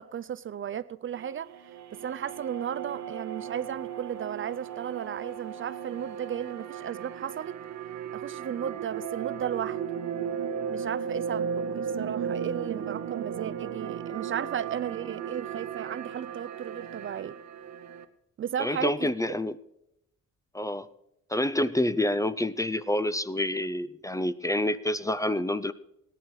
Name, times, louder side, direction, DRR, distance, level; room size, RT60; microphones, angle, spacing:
voice 1, 0.0-1.5 1.9-7.6 8.1-9.8 10.7-17.4 18.4-19.1, right 9 dB, 45° right, 0.5 m, -35 dB
sound 1, 1.1-18.0, right 7 dB, 65° right, 1.0 m, -36 dB
voice 2, 18.6-19.6 20.5-20.9 21.3-25.7, left 1 dB, 10° left, 0.5 m, -28 dB
17.0 x 11.0 x 4.8 m
cardioid pair, 90°, 30 cm